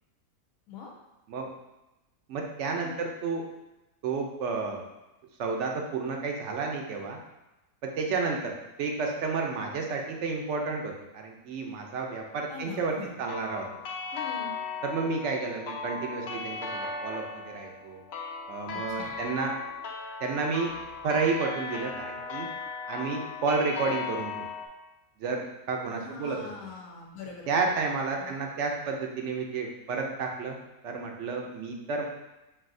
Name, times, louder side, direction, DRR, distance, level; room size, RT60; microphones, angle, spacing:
voice 1, 2.3-3.4 4.0-4.8 5.4-7.2 7.8-8.5 8.8-13.6 14.8-18.0 18.5-19.5 20.2-20.7 21.0-22.5 22.9-24.4 25.2-26.4 27.5-30.6 30.8-32.1, right 4 dB, 65° right, 1 dB, 0.8 m, -31 dB
voice 2, 12.5-13.2 14.1-14.5 18.9-19.1 25.8-27.7 28.2-28.4, left 4 dB, 75° left, 0 dB, 1.0 m, -42 dB
sound 1, 13.3-24.7, left 5 dB, 60° left, 0.7 m, -37 dB
5.4 x 2.6 x 2.6 m, 0.99 s
omnidirectional pair, 1.5 m